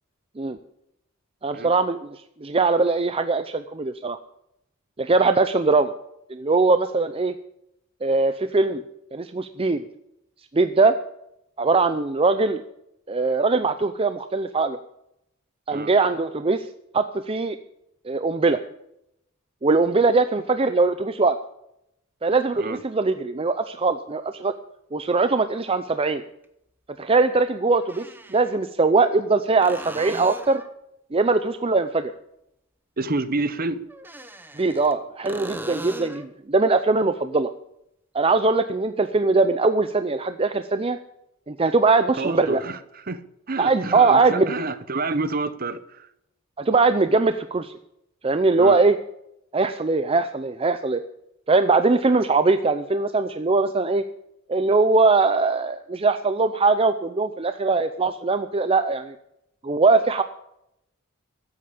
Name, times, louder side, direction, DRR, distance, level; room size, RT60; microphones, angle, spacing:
voice 1, 1.4-4.2 5.0-5.9 6.3-7.3 8.0-8.8 9.1-9.8 10.5-10.9 11.6-12.6 13.1-14.8 15.7-16.6 16.9-17.6 18.1-18.6 19.6-21.4 22.2-24.5 24.9-26.2 27.0-30.6 31.1-32.1 34.6-37.5 38.1-41.0 41.5-42.6 43.6-44.5 46.6-47.7 48.2-49.0 49.5-51.0 51.5-54.0 54.5-59.1 59.6-60.2, right 3 dB, 25° right, 0.5 m, -21 dB
sound 1, 24.3-24.4 26.4-26.5 27.8-28.6 29.6-30.8 33.9-34.9 35.3-36.3 40.0-40.1, right 1 dB, 10° right, 0.9 m, -39 dB
voice 2, 33.0-33.8 42.2-43.2 43.5-46.1 48.6-48.8, right 3 dB, 45° right, 0.9 m, -28 dB
14.5 x 8.7 x 8.5 m
head